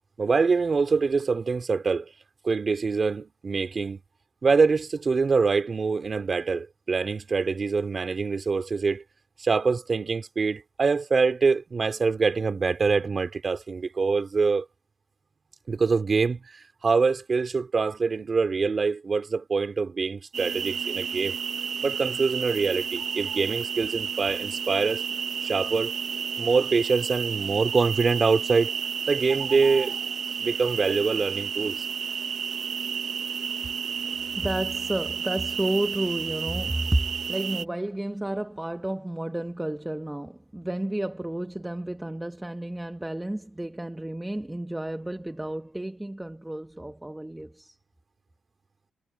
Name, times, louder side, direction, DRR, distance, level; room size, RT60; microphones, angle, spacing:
voice 1, 0.2-2.1 2.4-4.0 4.4-9.0 9.4-14.7 15.7-21.4 21.8-25.0 25.4-25.9 26.4-28.7 29.1-30.0 30.4-31.8, right 4 dB, 30° right, 3.6 m, -25 dB
sound 1, 20.3-37.6, right 7 dB, 45° right, 1.1 m, -31 dB
voice 2, 34.3-37.0 37.3-47.8, right 1 dB, 5° right, 1.1 m, -31 dB
cardioid pair, 150°, 0 cm